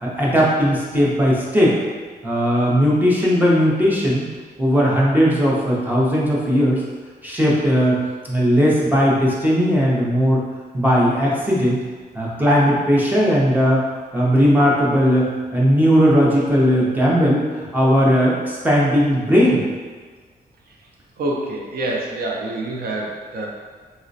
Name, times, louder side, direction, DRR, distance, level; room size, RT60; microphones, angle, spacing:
voice 1, 0.0-1.7 2.2-4.2 4.6-6.8 7.2-8.0 8.3-10.4 10.7-11.8 12.1-13.8 14.1-19.6, equal, 10° right, -5 dB, 0.5 m, -17 dB
voice 2, 21.2-23.5, right 2 dB, 65° right, -1 dB, 0.5 m, -26 dB
3.8 x 2.1 x 2.5 m, 1.5 s
wide cardioid pair, 175°, 17 cm